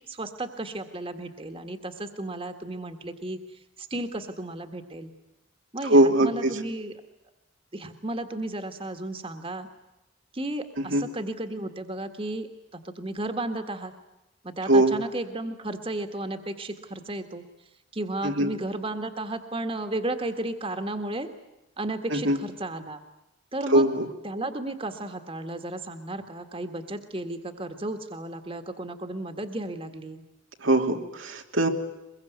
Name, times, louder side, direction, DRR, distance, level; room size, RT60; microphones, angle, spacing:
voice 1, 0.1-5.1 5.7-6.9 7.7-9.7 10.3-13.9 14.4-17.4 17.9-21.3 21.8-23.0 23.5-23.9 24.2-30.2, right 1 dB, 30° right, 8 dB, 1.8 m, -34 dB
voice 2, 5.8-6.5 10.9-11.0 14.7-14.9 18.2-18.5 22.1-22.4 23.7-24.1 30.6-31.7, right 1 dB, 85° right, 3 dB, 3.0 m, -21 dB
23.5 x 22.5 x 9.4 m, 0.96 s
head